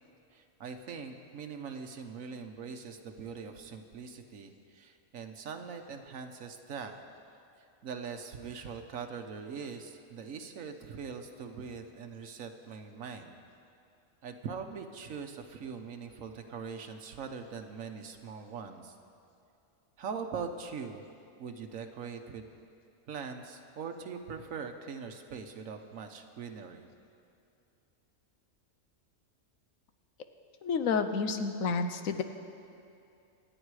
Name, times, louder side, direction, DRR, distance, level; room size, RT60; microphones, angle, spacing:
voice 1, 0.3-7.0 7.8-13.4 14.2-18.9 20.0-21.1 21.4-22.5 23.1-26.9, right 6 dB, 85° right, 5 dB, 1.3 m, -42 dB
voice 2, 30.6-32.2, left 5 dB, 85° left, 8 dB, 1.3 m, -30 dB
26.5 x 9.1 x 4.8 m, 2.6 s
omnidirectional pair, 1.4 m